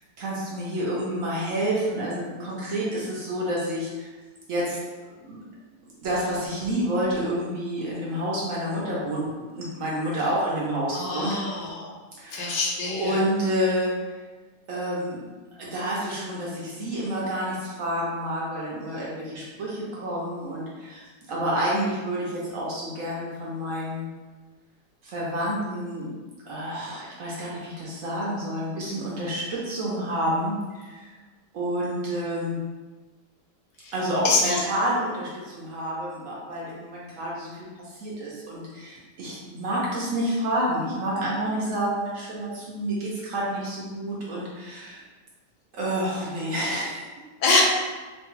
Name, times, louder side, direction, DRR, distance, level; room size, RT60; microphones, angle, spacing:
voice 1, 0.2-4.1 4.5-4.8 5.2-5.4 5.8-11.4 12.2-12.6 12.9-14.2 14.7-15.3 15.6-24.1 25.0-26.1 26.5-31.1 31.5-32.7 33.9-45.0 45.7-47.2, right 1 dB, 60° right, -6 dB, 1.0 m, -29 dB
voice 2, 10.9-11.9 12.3-13.2 33.8-33.9 34.2-34.6 47.4-47.6, left 3 dB, 85° left, -2 dB, 1.3 m, -24 dB
3.2 x 2.3 x 3.0 m, 1.3 s
omnidirectional pair, 1.8 m